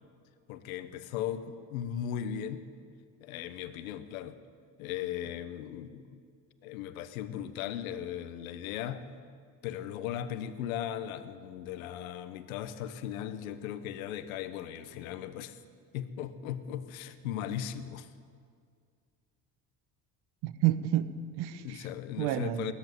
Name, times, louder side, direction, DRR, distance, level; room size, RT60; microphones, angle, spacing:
voice 1, 0.5-2.7 3.2-4.4 4.8-6.2 6.6-9.0 9.6-15.6 15.9-18.1 21.5-22.7, left 10 dB, 90° left, 11 dB, 1.2 m, -37 dB
voice 2, 20.4-21.8 22.2-22.7, right 13 dB, 70° right, 12 dB, 1.3 m, -30 dB
19.5 x 14.5 x 9.2 m, 2.1 s
supercardioid pair, 75°, 40 cm